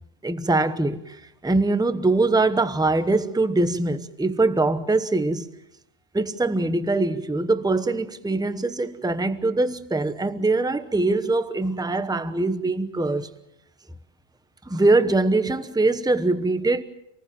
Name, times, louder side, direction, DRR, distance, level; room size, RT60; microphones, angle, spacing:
voice 1, 0.2-5.5 6.1-13.3 14.7-16.8, right 2 dB, 5° right, 0.8 m, -23 dB
27.0 x 19.5 x 7.5 m
omnidirectional pair, 1.3 m